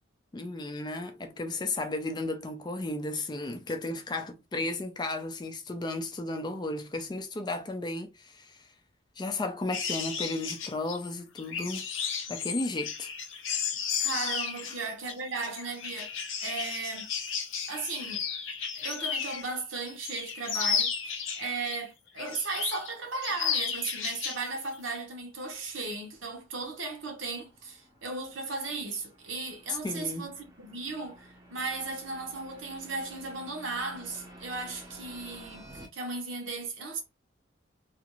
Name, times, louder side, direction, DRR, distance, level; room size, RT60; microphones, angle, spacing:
voice 1, 0.3-8.7 9.2-11.9 12.3-13.1 29.8-30.3, left 2 dB, 20° left, 0.3 m, -34 dB
sound 1, 9.7-19.5 19.9-21.8 22.2-22.9 23.2-24.4 24.7-25.0, left 7 dB, 85° left, 0.5 m, -33 dB
voice 2, 14.0-17.1 17.7-18.2 18.7-35.7 35.9-37.0, right 3 dB, 80° right, 0.9 m, -36 dB
sound 2, 24.4-35.9, right 1 dB, 20° right, 0.6 m, -53 dB
2.4 x 2.4 x 2.9 m
head